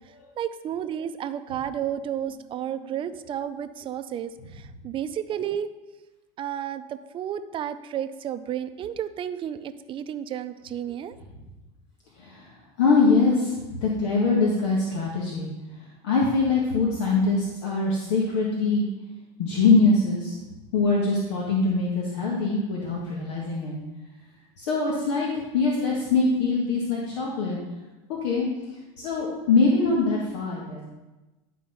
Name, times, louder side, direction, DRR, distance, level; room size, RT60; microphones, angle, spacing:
voice 1, 0.4-5.7 6.4-11.2, right 9 dB, 35° right, 10 dB, 0.6 m, -32 dB
voice 2, 12.2-12.5 12.8-15.5 15.8-18.9 19.4-20.4 20.7-23.8 24.6-27.6 28.1-28.5 29.0-30.8, left 3 dB, 85° left, -3 dB, 1.7 m, -23 dB
11.0 x 4.2 x 5.6 m, 1.1 s
supercardioid pair, 115°, 15 cm